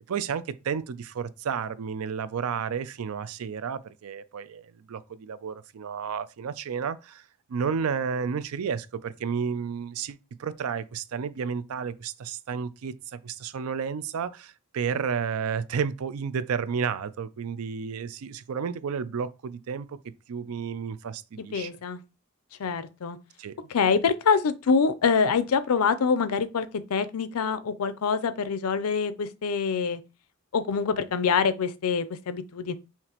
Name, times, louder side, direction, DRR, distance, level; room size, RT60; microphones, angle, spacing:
voice 1, 0.0-7.2 7.5-20.0 20.3-21.7 23.4-23.6, right 6 dB, 75° right, 0.4 m, -32 dB
voice 2, 21.5-22.0 22.6-23.2 23.7-30.0 30.5-32.7, left 5 dB, 85° left, 0.5 m, -25 dB
5.8 x 2.9 x 2.9 m
head